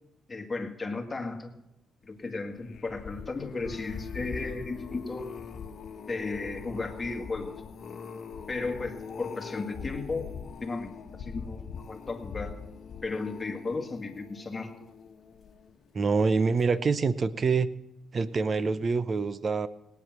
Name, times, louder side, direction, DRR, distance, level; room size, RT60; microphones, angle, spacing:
voice 1, 0.3-1.5 2.0-5.3 6.1-7.6 8.5-10.4 10.6-10.9 11.2-12.5 13.0-14.7, left 3 dB, 25° left, 3 dB, 2.0 m, -34 dB
sound 1, 2.5-15.9 16.4-16.7 17.0-17.1, left 6 dB, 60° left, 1.2 m, -42 dB
voice 2, 15.9-17.7 18.1-19.7, right 4 dB, 40° right, 14 dB, 0.8 m, -26 dB
18.0 x 9.5 x 6.1 m, 0.92 s
cardioid pair, 90°, 0 cm